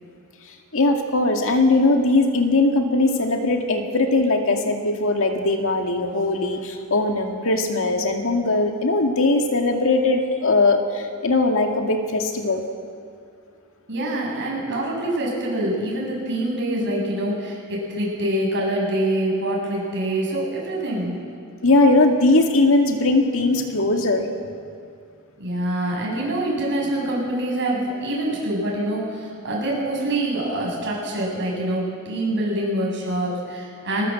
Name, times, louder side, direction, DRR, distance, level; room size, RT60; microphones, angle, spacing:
voice 1, 0.7-12.6 21.6-24.3, left 2 dB, 65° left, 3 dB, 2.1 m, -20 dB
voice 2, 13.9-21.1 25.4-34.1, right 1 dB, 55° right, -3 dB, 7.9 m, -25 dB
22.5 x 19.0 x 7.6 m, 2.3 s
head